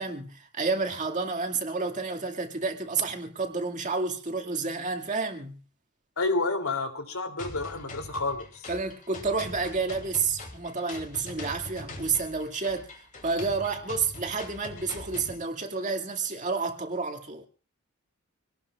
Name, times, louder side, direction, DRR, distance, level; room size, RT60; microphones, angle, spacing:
voice 1, 0.0-5.6 8.7-17.5, right 4 dB, 35° right, 2.2 m, -30 dB
voice 2, 6.2-8.6, left 3 dB, 85° left, 3.0 m, -29 dB
sound 1, 7.4-15.4, left 2 dB, 40° left, 2.9 m, -43 dB
25.0 x 18.5 x 2.4 m
head